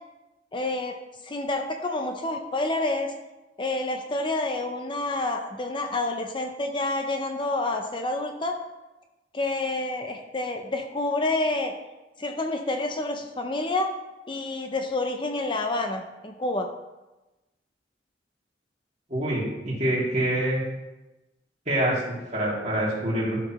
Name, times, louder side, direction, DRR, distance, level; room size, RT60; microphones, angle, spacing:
voice 1, 0.5-3.1 3.6-8.6 9.3-11.7 12.2-13.9 14.3-16.7, left 2 dB, 30° left, 4 dB, 0.6 m, -28 dB
voice 2, 19.1-20.6 21.7-22.0 22.3-23.4, right 1 dB, 40° right, -5 dB, 2.6 m, -25 dB
12.5 x 5.9 x 3.1 m, 1.1 s
head